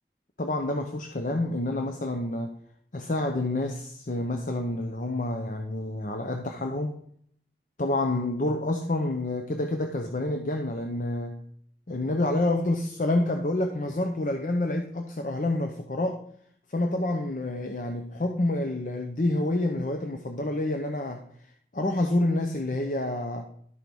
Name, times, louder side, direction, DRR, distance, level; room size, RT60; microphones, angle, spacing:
voice 1, 0.4-2.5 2.9-7.0 7.8-11.4 11.9-16.2 16.7-21.2 21.7-23.5, left 1 dB, 45° left, 4 dB, 0.7 m, -28 dB
11.5 x 4.6 x 5.3 m, 0.64 s
head